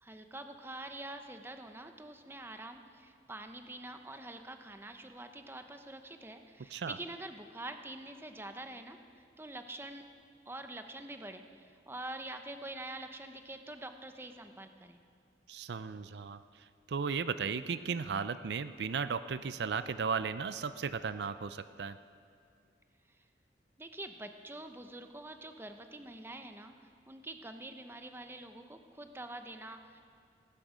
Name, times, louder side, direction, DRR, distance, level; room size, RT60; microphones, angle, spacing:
voice 1, 0.0-10.0 10.5-15.0 23.1-23.2 23.8-30.0, right 2 dB, 15° right, 7 dB, 0.7 m, -46 dB
voice 2, 15.5-16.4 16.9-22.0, right 5 dB, 70° right, 13 dB, 0.4 m, -35 dB
17.5 x 15.0 x 5.0 m, 2.3 s
head